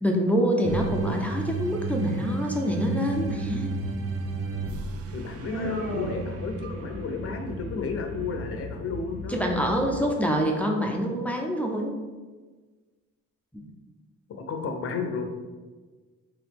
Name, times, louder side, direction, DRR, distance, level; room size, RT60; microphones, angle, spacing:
voice 1, 0.0-3.7 9.3-12.0 13.5-13.7, equal, 5° left, 0 dB, 0.4 m, -26 dB
sound 1, 0.6-7.0, right 4 dB, 50° right, 0.4 m, -33 dB
sound 2, 3.1-10.0, left 1 dB, 25° right, 1.0 m, -38 dB
voice 2, 5.1-9.6 14.4-15.3, left 4 dB, 50° left, 4 dB, 0.6 m, -33 dB
Human voice, 5.5-7.2, equal, 75° right, 1.4 m, -34 dB
3.4 x 2.9 x 3.4 m, 1.3 s
cardioid pair, 90°, 30 cm